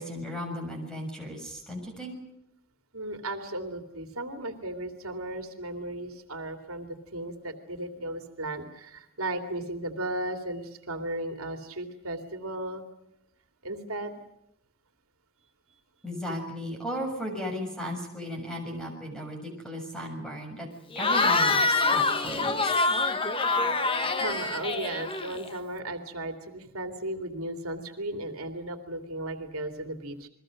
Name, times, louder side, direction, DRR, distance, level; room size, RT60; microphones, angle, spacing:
voice 1, 0.0-2.2 16.0-20.7 21.0-21.6 21.9-22.8, equal, 5° left, 2 dB, 6.9 m, -35 dB
voice 2, 2.9-12.8 13.6-14.1 24.1-30.3, right 1 dB, 75° right, 6 dB, 2.7 m, -35 dB
Cheering / Crowd, 20.9-25.6, left 3 dB, 25° left, 1.2 m, -25 dB
30.0 x 22.0 x 6.5 m, 0.80 s
head